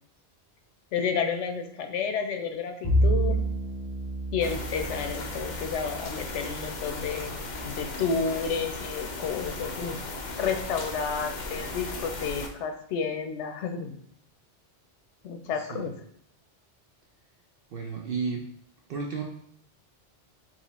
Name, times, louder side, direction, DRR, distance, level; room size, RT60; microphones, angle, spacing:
voice 1, 0.9-3.4 4.3-7.4 7.6-10.0 10.4-14.0 15.2-15.9, left 6 dB, 90° left, 6 dB, 0.9 m, -31 dB
Bowed string instrument, 2.8-7.4, right 1 dB, 25° left, 1.1 m, -29 dB
sound 1, 4.4-12.5, left 2 dB, 50° left, 0.7 m, -37 dB
voice 2, 17.7-18.4 18.9-19.2, right 5 dB, 60° right, 1 dB, 0.7 m, -32 dB
4.0 x 3.0 x 4.1 m, 0.66 s
omnidirectional pair, 1.2 m